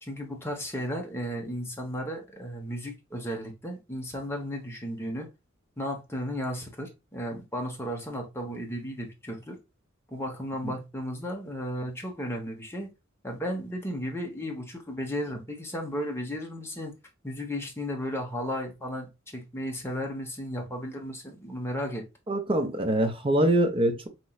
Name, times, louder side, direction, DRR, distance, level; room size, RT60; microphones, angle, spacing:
voice 1, 0.0-5.3 5.8-9.6 10.1-12.9 13.2-16.9 17.2-22.0, equal, 10° left, 0.8 m, -34 dB
voice 2, 22.3-24.1, right 1 dB, 25° right, 0.6 m, -24 dB
4.2 x 3.0 x 2.2 m
head